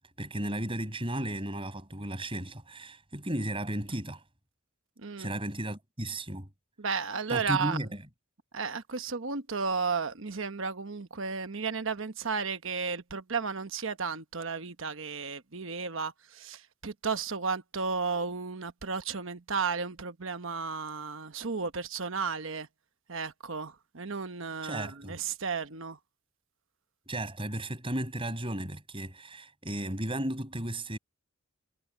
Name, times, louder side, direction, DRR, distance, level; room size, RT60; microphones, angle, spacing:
voice 1, 0.2-4.2 5.2-6.5 7.3-8.0 24.6-25.2 27.1-31.0, right 1 dB, 25° right, 6.3 m, -34 dB
voice 2, 5.0-5.3 6.8-7.9 8.5-22.7 23.1-26.0, right 5 dB, 60° right, 1.1 m, -33 dB
head